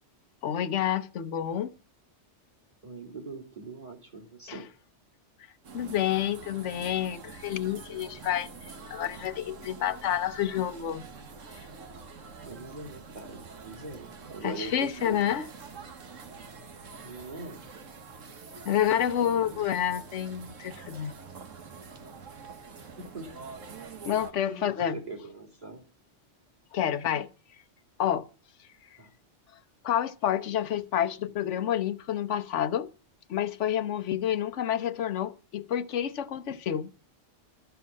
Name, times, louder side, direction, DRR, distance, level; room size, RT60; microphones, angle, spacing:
voice 1, 0.4-1.7 4.5-4.6 5.7-8.5 8.9-11.0 14.4-15.4 18.7-21.1 24.0-25.0 26.7-27.3 28.0-28.3 29.8-32.9 33.3-36.9, left 10 dB, 75° left, 1.1 m, -29 dB
voice 2, 2.8-4.7 12.4-15.2 17.0-17.6 19.2-19.6 22.8-23.5 24.3-25.8 29.0-29.1, right 3 dB, 35° right, 2.8 m, -42 dB
sound 1, 5.6-24.3, right 5 dB, 90° right, 1.6 m, -46 dB
13.5 x 6.9 x 7.4 m
omnidirectional pair, 1.3 m